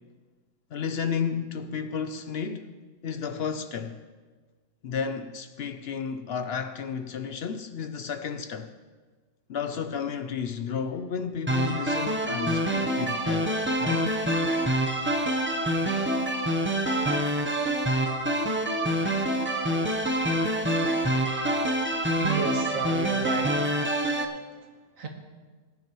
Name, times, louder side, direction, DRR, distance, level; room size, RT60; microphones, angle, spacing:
voice 1, 0.7-2.7 3.0-4.0 4.8-8.7 9.5-13.5 13.8-14.2, left 6 dB, 60° left, 0.7 m, -32 dB
sound 1, 11.5-24.2, right 1 dB, 10° right, 0.6 m, -26 dB
voice 2, 22.2-23.7 25.0-25.1, right 6 dB, 85° right, 1.6 m, -32 dB
19.0 x 9.5 x 3.1 m
omnidirectional pair, 1.4 m